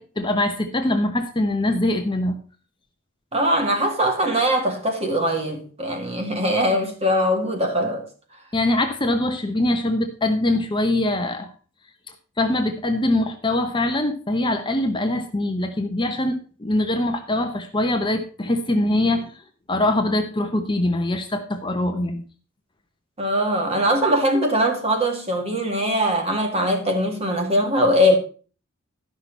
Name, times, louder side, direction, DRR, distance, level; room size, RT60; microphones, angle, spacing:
voice 1, 0.0-2.4 8.5-11.5 12.4-19.3 19.7-22.2, left 1 dB, 25° left, 0.9 m, -23 dB
voice 2, 3.3-8.1 23.2-28.2, equal, 30° right, 2.2 m, -21 dB
12.0 x 6.0 x 5.3 m
head